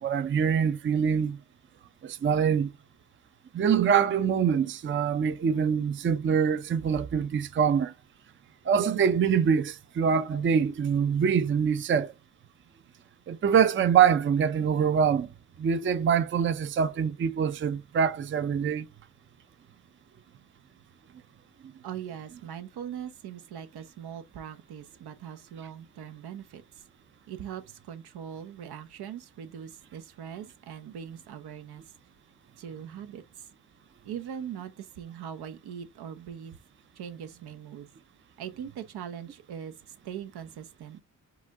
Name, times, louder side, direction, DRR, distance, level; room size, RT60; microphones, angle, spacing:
voice 1, 0.0-1.4 2.0-2.7 3.5-7.9 8.7-12.1 13.3-15.3 15.6-18.9, right 7 dB, 30° right, 0.5 m, -24 dB
voice 2, 21.8-26.8 27.3-31.8 32.6-33.5 34.0-36.6 37.0-37.9 38.4-41.0, right 9 dB, 75° right, 0.9 m, -41 dB
4.8 x 2.7 x 3.5 m
cardioid pair, 75°, 39 cm